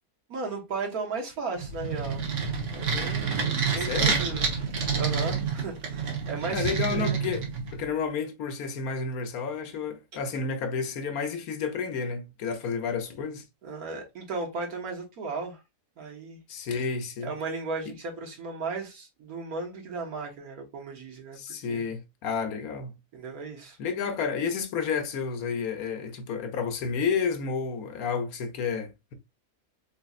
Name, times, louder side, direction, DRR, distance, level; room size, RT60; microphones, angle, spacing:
voice 1, 0.3-2.2 2.7-4.5 5.0-7.2 13.6-15.6 16.0-16.4 17.2-21.4 21.7-21.9 23.1-23.8, right 4 dB, 80° right, 1.8 m, -35 dB
sound 1, 1.6-7.9, right 5 dB, 55° right, 1.4 m, -28 dB
voice 2, 3.8-4.2 6.5-7.5 7.7-13.4 16.5-17.3 21.4-23.0 23.8-29.2, left 5 dB, 85° left, 1.3 m, -31 dB
4.1 x 3.9 x 2.4 m
omnidirectional pair, 1.5 m